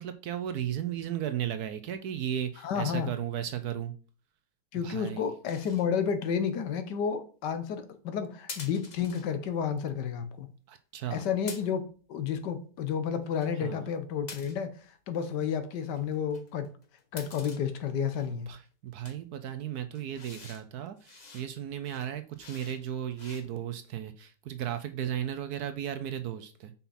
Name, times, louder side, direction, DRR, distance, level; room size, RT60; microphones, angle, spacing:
voice 1, 0.0-3.9 4.8-5.3 10.7-11.2 13.6-13.9 18.3-26.7, right 10 dB, 70° right, 1.1 m, -35 dB
voice 2, 2.6-3.1 4.7-10.5 11.1-11.8 12.1-14.7 15.1-16.7 17.1-18.5, left 7 dB, 75° left, 1.5 m, -31 dB
sound 1, 5.5-5.9 8.5-9.3 11.5-12.0 13.1-13.5 14.3-14.8 15.9-17.6 18.1-18.5 19.0-19.2 19.9-20.6 21.0-21.5 21.8-22.8 23.1-23.4, left 4 dB, 35° left, 0.8 m, -47 dB
5.7 x 5.5 x 4.2 m
omnidirectional pair, 1.9 m